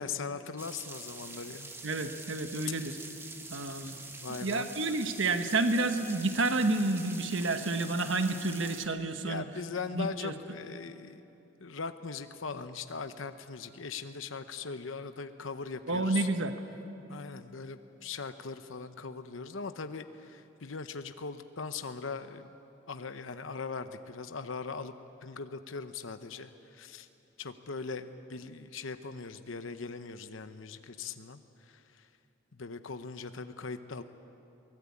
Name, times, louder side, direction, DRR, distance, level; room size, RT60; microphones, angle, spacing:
voice 1, 0.0-1.7 4.1-4.7 9.2-11.2 11.6-16.3 17.1-22.5 22.9-24.9 25.2-27.1 27.4-32.1 32.5-34.0, left 4 dB, 85° left, 9 dB, 0.9 m, -40 dB
sound 1, 0.6-8.9, right 3 dB, 10° right, 1.2 m, -45 dB
voice 2, 1.8-3.0 3.5-4.0 4.4-9.4 9.9-10.3 15.9-16.5, right 2 dB, 75° right, 7 dB, 1.2 m, -30 dB
23.0 x 19.5 x 8.5 m, 2.8 s
head